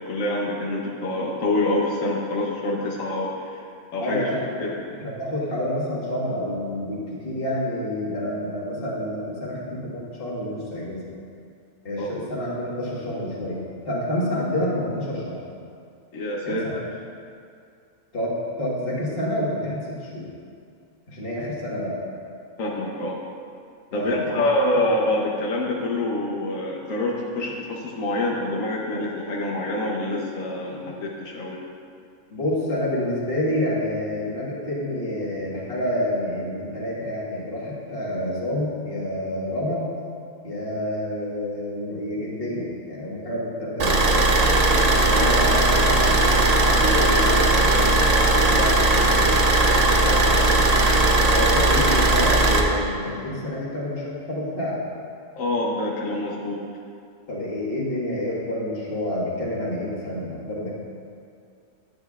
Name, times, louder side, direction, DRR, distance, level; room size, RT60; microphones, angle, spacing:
voice 1, 0.0-3.6 3.9-4.3 4.6-4.7 12.0-12.1 16.1-16.8 22.6-23.2 23.9-31.6 50.0-50.6 55.4-56.6, left 1 dB, 90° left, -3 dB, 1.3 m, -26 dB
voice 2, 4.0-4.7 5.0-11.0 11.8-13.6 13.9-15.4 16.5-16.8 18.1-18.3 18.6-20.3 21.1-22.0 23.9-24.4 30.9-31.0 32.3-39.9 40.4-44.1 44.4-46.5 46.8-49.4 51.3-54.8 57.3-60.7, left 1 dB, 45° left, -6 dB, 1.8 m, -28 dB
Car / Idling, 43.8-52.6, right 2 dB, 45° right, 0.6 m, -18 dB
10.5 x 8.7 x 2.4 m, 2.4 s
omnidirectional pair, 1.3 m